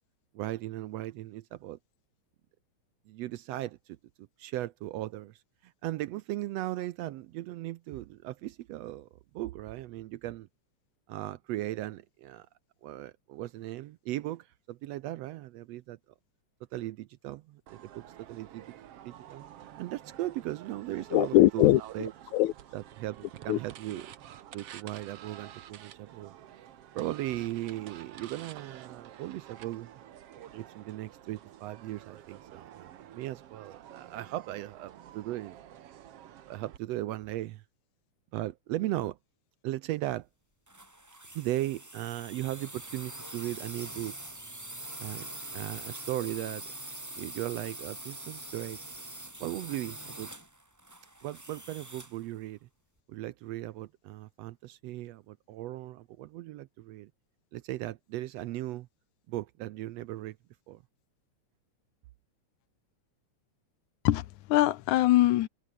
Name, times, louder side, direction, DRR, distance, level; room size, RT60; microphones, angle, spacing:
voice 1, 0.4-1.8 3.1-9.1 9.3-10.5 11.1-12.5 12.8-16.0 16.7-18.6 19.1-19.4 19.8-22.1 22.7-24.1 24.5-26.4 27.0-29.9 30.5-35.6 36.5-37.6 38.3-39.2 39.6-40.3 41.3-44.2 45.0-46.6 47.2-48.8 49.4-50.3 51.2-52.7 53.1-57.1 57.5-58.9 59.3-60.4 60.7-60.8, right 15 dB, 75° right, 1.6 m, -37 dB
sound 1, 17.7-36.8, right 11 dB, 60° right, 2.0 m, -50 dB
voice 2, 21.1-21.8 22.3-22.5 23.5-23.6 64.0-65.5, left 15 dB, 85° left, 2.3 m, -22 dB
sound 2, 40.7-52.2, right 1 dB, 10° right, 1.4 m, -44 dB
omnidirectional pair, 3.4 m